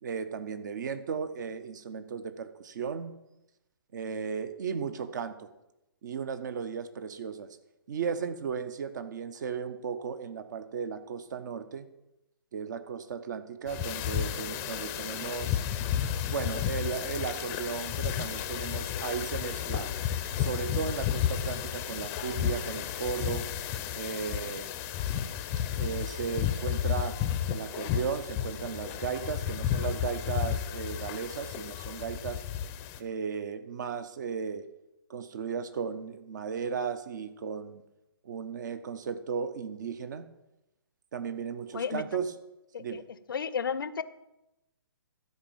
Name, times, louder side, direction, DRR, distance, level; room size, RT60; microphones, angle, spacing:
voice 1, 0.0-3.2 3.9-5.5 6.0-7.6 7.9-11.9 12.5-15.6 16.3-19.9 20.4-23.5 23.9-24.7 25.8-27.2 27.5-32.4 33.0-34.7 35.1-37.8 38.2-40.3 41.1-42.3 42.8-43.0, right 6 dB, 50° right, 11 dB, 0.9 m, -35 dB
sound 1, 13.7-33.0, left 10 dB, 20° left, 0.6 m, -32 dB
voice 2, 41.7-42.0 42.7-43.0 43.3-44.0, left 6 dB, 65° left, 15 dB, 0.6 m, -32 dB
12.5 x 4.3 x 7.3 m, 0.93 s
figure-of-eight pair, 135°, 13 cm